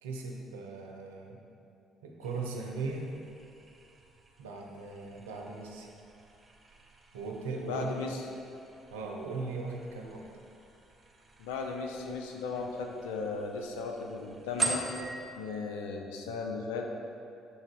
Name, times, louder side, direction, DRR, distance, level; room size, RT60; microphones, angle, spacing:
voice 1, 0.0-1.4 2.0-3.1 4.4-5.9 7.1-7.9 8.9-10.3, right 3 dB, 90° right, 0 dB, 0.7 m, -38 dB
sound 1, 2.2-15.3, right 3 dB, 30° right, 1.0 m, -43 dB
voice 2, 7.6-8.2 11.4-14.9 15.4-16.8, left 4 dB, 85° left, 2 dB, 0.6 m, -36 dB
7.1 x 3.8 x 4.6 m, 2.6 s
hypercardioid pair, 55°, 0 cm